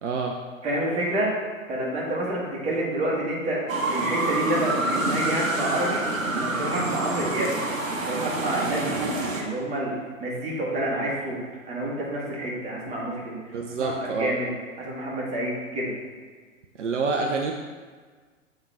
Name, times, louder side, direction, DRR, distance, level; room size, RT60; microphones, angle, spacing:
voice 1, 0.0-0.3 8.8-9.0 13.5-14.3 16.8-17.5, right 4 dB, 60° right, 2 dB, 0.6 m, -27 dB
voice 2, 0.6-1.3 1.7-6.0 6.4-7.5 7.9-9.9 10.2-11.4 11.6-13.4 13.8-14.5 14.8-15.9, right 1 dB, 15° right, -5 dB, 1.4 m, -28 dB
sound 1, 3.7-9.4, right 2 dB, 80° right, 1.0 m, -27 dB
7.2 x 3.9 x 3.3 m, 1.5 s
figure-of-eight pair, 105°, 40 cm